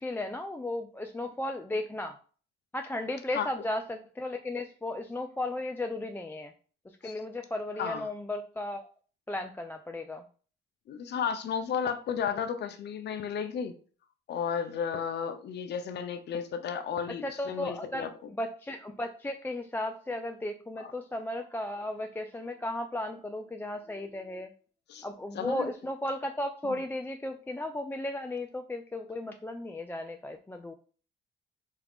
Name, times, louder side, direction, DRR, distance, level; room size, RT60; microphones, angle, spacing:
voice 1, 0.0-2.2 2.7-6.5 7.0-8.9 9.3-10.2 17.1-24.5 25.0-30.7, left 1 dB, 10° left, 0.3 m, -35 dB
voice 2, 7.8-8.1 10.9-13.7 14.3-18.1 20.8-20.9 24.9-25.1 25.3-25.7 26.7-26.8, left 7 dB, 60° left, 0.6 m, -33 dB
4.4 x 2.4 x 3.5 m
cardioid pair, 90°, 20 cm